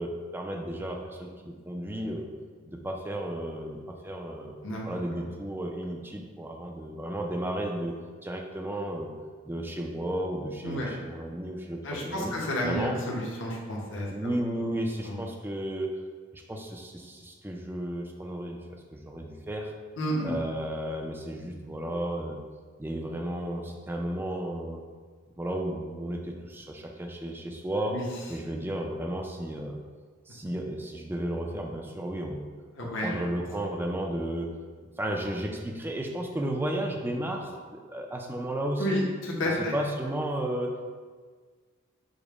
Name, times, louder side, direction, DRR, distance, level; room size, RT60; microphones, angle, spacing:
voice 1, 0.0-2.3 2.7-4.6 4.9-8.0 8.2-9.1 9.4-12.3 12.6-13.0 14.1-15.9 16.3-19.7 20.2-22.4 22.8-24.8 25.4-28.0 28.3-29.8 30.3-32.5 32.8-34.5 34.8-39.0 39.7-40.9, right 1 dB, 10° right, 1 dB, 0.4 m, -33 dB
voice 2, 11.8-14.3 15.0-15.1 20.0-20.3 27.9-28.1 32.7-33.1 38.8-39.7, equal, 65° left, -4 dB, 0.8 m, -31 dB
5.0 x 2.1 x 4.8 m, 1.5 s
head